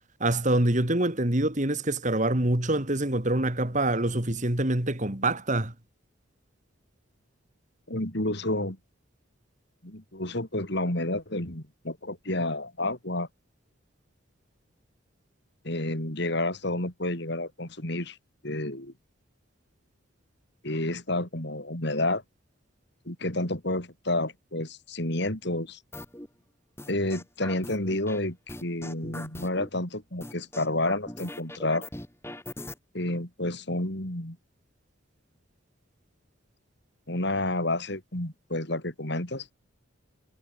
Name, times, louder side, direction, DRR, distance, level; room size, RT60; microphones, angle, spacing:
voice 1, 0.2-5.7, right 1 dB, 35° right, 2.6 m, -25 dB
voice 2, 7.9-8.8 9.8-13.3 15.6-18.2 18.4-18.9 20.6-22.2 23.1-25.8 26.9-31.9 32.9-34.4 37.1-39.5, left 1 dB, 55° left, 4.3 m, -30 dB
sound 1, 25.9-26.3 26.8-28.2 28.5-29.7 30.2-32.8, left 1 dB, 10° left, 4.4 m, -40 dB
head